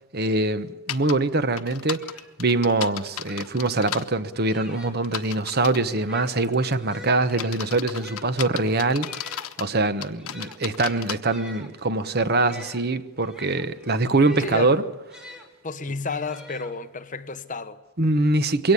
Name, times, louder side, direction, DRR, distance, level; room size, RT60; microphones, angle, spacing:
voice 1, 0.0-2.0 2.4-9.1 9.6-14.8 18.0-18.7, right 2 dB, 45° right, 1.1 m, -23 dB
sound 1, 0.9-1.1 1.6-4.0 5.0-5.9 6.4-6.7 7.3-9.7 10.0-11.2, left 10 dB, 75° left, 1.2 m, -34 dB
sound 2, 1.5-1.6 1.9-5.2 5.9-15.5 16.0-17.1, left 2 dB, 5° right, 3.1 m, -46 dB
voice 2, 14.4-14.8 15.6-17.8, left 4 dB, 35° left, 1.1 m, -31 dB
23.0 x 18.0 x 9.9 m
head